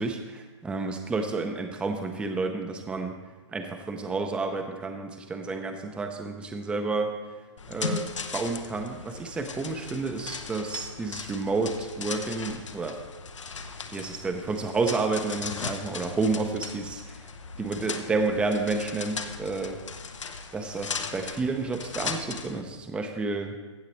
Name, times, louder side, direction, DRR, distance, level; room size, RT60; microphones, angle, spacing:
voice 1, 0.0-3.1 3.5-7.1 7.7-8.1 8.3-13.0 13.6-17.2 17.6-19.8 20.5-23.6, right 3 dB, 5° right, 5 dB, 0.6 m, -30 dB
sound 1, 7.6-22.6, left 5 dB, 80° left, 0.9 m, -38 dB
15.5 x 7.4 x 3.1 m, 1.2 s
hypercardioid pair, 135°, 16 cm